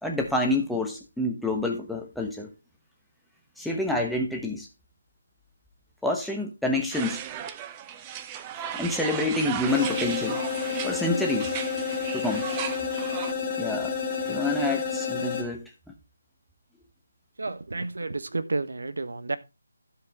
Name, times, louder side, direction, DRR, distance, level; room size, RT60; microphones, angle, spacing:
voice 1, 0.0-2.5 3.6-4.7 6.0-7.2 8.8-10.4 10.8-11.5 12.1-12.5 13.6-13.9 14.3-15.7, left 2 dB, ahead, 0 dB, 1.0 m, -27 dB
sound 1, 6.9-13.3, right 9 dB, 15° right, 0.5 m, -36 dB
sound 2, 9.7-15.4, left 5 dB, 15° left, 2.0 m, -30 dB
voice 2, 17.4-19.4, right 3 dB, 75° right, 13 dB, 1.0 m, -31 dB
15.0 x 5.0 x 3.5 m, 0.26 s
figure-of-eight pair, 165°, 0 cm